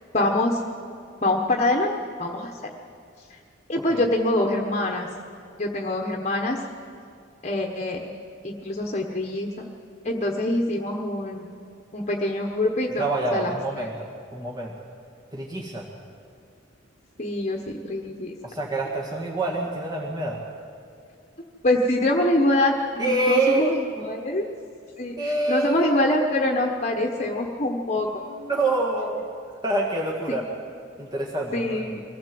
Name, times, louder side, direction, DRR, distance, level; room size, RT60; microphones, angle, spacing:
voice 1, 0.1-0.6 1.2-2.5 3.7-5.1 5.6-6.6 7.4-8.0 8.4-9.7 10.0-11.4 11.9-13.0 13.3-13.5 17.2-17.6 17.8-18.3 21.6-24.5 25.0-28.2 30.3-30.4 31.5-32.0, left 1 dB, 35° left, 2 dB, 1.2 m, -24 dB
voice 2, 13.0-14.7 15.3-15.9 18.4-20.4 23.0-23.8 25.2-26.1 28.2-29.3 29.6-30.5 31.0-32.0, right 2 dB, 20° right, -3 dB, 1.9 m, -26 dB
23.5 x 16.0 x 7.7 m, 2.3 s
head